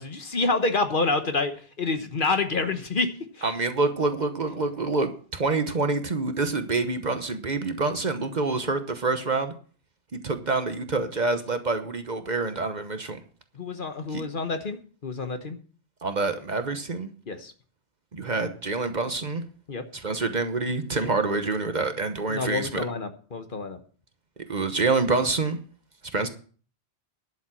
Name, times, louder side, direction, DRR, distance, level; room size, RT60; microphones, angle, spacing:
voice 1, 0.0-1.5 1.8-3.1 3.4-3.5 13.6-14.8 15.0-15.6 17.3-17.5 19.7-19.8 21.0-21.1 22.3-23.8, left 3 dB, 50° left, 8 dB, 1.2 m, -27 dB
voice 2, 3.4-9.5 10.1-13.2 14.1-14.2 16.0-17.1 18.1-19.4 19.9-22.8 24.5-25.6 26.1-26.3, right 3 dB, 45° right, 8 dB, 1.1 m, -27 dB
11.5 x 7.2 x 6.2 m, 0.42 s
omnidirectional pair, 1.1 m